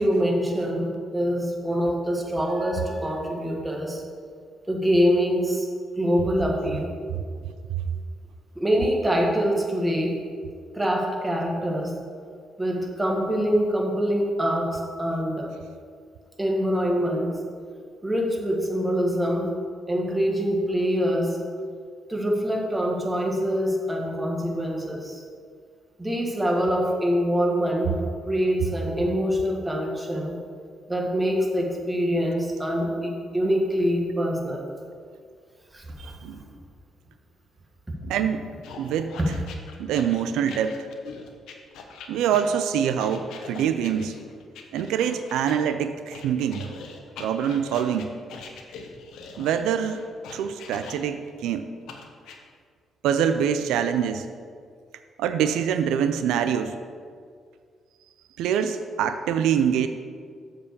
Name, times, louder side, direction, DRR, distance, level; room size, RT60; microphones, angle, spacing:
voice 1, 0.0-4.0 4.7-5.7 6.0-6.9 8.5-10.2 10.7-11.9 12.6-15.5 16.4-17.4 18.0-19.5 19.9-21.4 22.1-25.2 26.0-30.4 30.9-34.7 35.7-36.5, equal, 15° right, 0 dB, 1.5 m, -25 dB
voice 2, 36.0-36.4 38.0-38.5 38.8-39.3 39.8-40.9 42.1-44.2 44.7-46.6 47.2-48.1 49.4-50.0 50.3-51.7 53.0-54.2 55.2-56.8 58.4-59.9, right 8 dB, 90° right, 9 dB, 0.4 m, -25 dB
sound 1, 38.6-45.6 46.1-51.3 51.9-52.4, left 5 dB, 85° left, 0.9 m, -42 dB
7.5 x 4.7 x 6.7 m, 2.1 s
cardioid pair, 90°, 0 cm